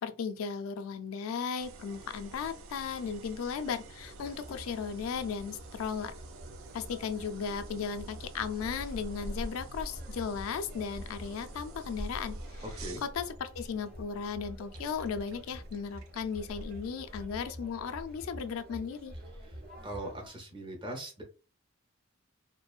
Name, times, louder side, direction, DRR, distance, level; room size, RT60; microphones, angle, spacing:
voice 1, 0.0-6.1 6.7-12.6 13.0-19.1, left 6 dB, 85° left, 0.3 m, -36 dB
sound 1, 1.6-16.9, right 2 dB, 80° right, 0.4 m, -50 dB
Conversation, 4.0-20.3, equal, 50° right, 1.0 m, -45 dB
voice 2, 19.8-21.2, right 1 dB, 25° right, 0.6 m, -40 dB
2.5 x 2.2 x 2.3 m
head